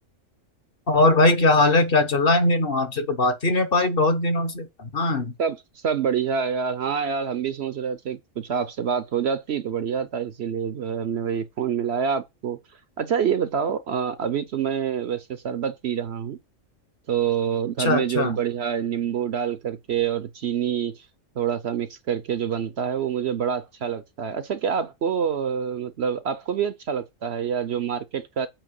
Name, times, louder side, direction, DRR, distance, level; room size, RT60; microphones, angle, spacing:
voice 1, 0.9-5.3 17.8-18.3, left 2 dB, 45° left, 1.2 m, -20 dB
voice 2, 5.4-12.6 13.0-16.4 17.1-21.0 21.4-28.5, right 7 dB, 60° right, 0.9 m, -26 dB
8.9 x 3.0 x 6.4 m
omnidirectional pair, 1.4 m